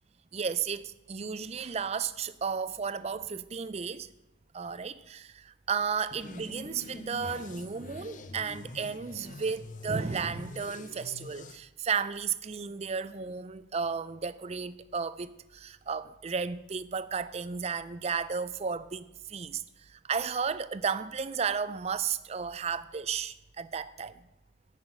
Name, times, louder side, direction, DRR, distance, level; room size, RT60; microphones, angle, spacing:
voice 1, 0.3-4.1 4.5-24.2, right 6 dB, 30° right, 0.4 m, -33 dB
sound 1, 6.1-11.6, left 2 dB, 40° left, 0.6 m, -45 dB
10.5 x 5.9 x 8.6 m
head